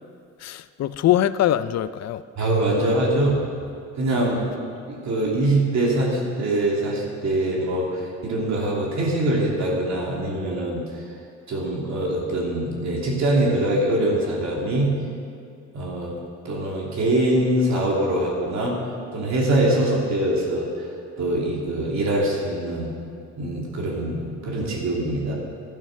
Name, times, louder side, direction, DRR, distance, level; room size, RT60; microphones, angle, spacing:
voice 1, 0.4-2.2 4.1-4.4, left 12 dB, 60° left, 15 dB, 0.5 m, -23 dB
voice 2, 2.4-3.4 4.0-4.4 4.9-10.8 11.5-14.9 15.7-16.2 16.4-18.8 19.1-20.7 21.2-22.9 23.4-25.3, right 1 dB, 65° right, -3 dB, 3.0 m, -23 dB
12.5 x 9.0 x 6.5 m, 2.3 s
cardioid pair, 90°, 30 cm